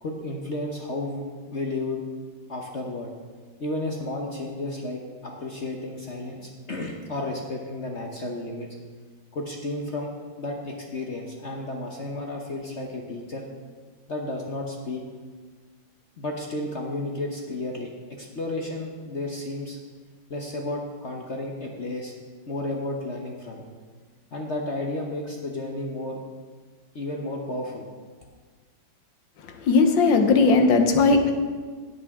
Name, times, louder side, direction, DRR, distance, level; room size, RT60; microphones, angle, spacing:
voice 1, 0.0-2.0 2.5-3.1 3.6-8.7 9.3-10.1 10.4-13.5 14.1-15.0 16.2-19.8 20.3-22.1 22.5-23.7 24.3-26.2 26.9-27.8, left 2 dB, 45° left, 0 dB, 1.1 m, -32 dB
voice 2, 29.5-31.3, left 4 dB, 90° left, 6 dB, 1.7 m, -18 dB
16.5 x 8.2 x 3.6 m, 1.5 s
omnidirectional pair, 2.0 m